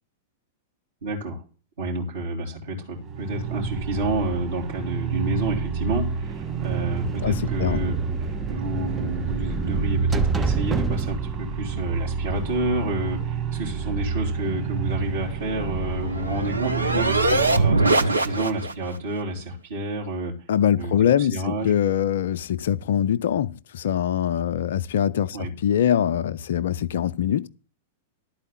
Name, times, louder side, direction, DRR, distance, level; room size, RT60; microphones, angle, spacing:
voice 1, 1.0-1.4 1.8-7.9 8.2-20.3 20.8-21.7 25.3-25.5, right 1 dB, 65° right, 3.3 m, -29 dB
sound 1, 2.9-17.7, right 6 dB, 30° right, 2.5 m, -29 dB
sound 2, 6.0-12.8, right 5 dB, 10° right, 0.5 m, -30 dB
voice 2, 7.2-7.8 20.5-27.5, left 9 dB, 60° left, 0.4 m, -23 dB
sound 3, 15.3-18.9, right 2 dB, 80° right, 0.7 m, -23 dB
12.0 x 4.5 x 7.7 m
figure-of-eight pair, 95°, 0 cm